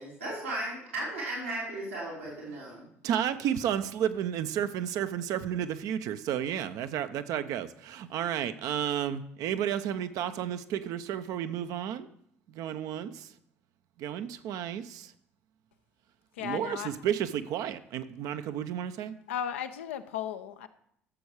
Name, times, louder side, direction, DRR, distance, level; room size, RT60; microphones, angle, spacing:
voice 1, 0.0-2.9, right 1 dB, 90° right, -6 dB, 3.3 m, -36 dB
voice 2, 3.0-12.1 12.5-13.3 14.0-15.1 16.4-19.1, right 10 dB, 60° right, 10 dB, 0.7 m, -32 dB
voice 3, 16.4-17.0 19.3-20.7, left 9 dB, 80° left, 8 dB, 0.7 m, -35 dB
12.5 x 7.1 x 4.8 m, 0.69 s
hypercardioid pair, 55°, 7 cm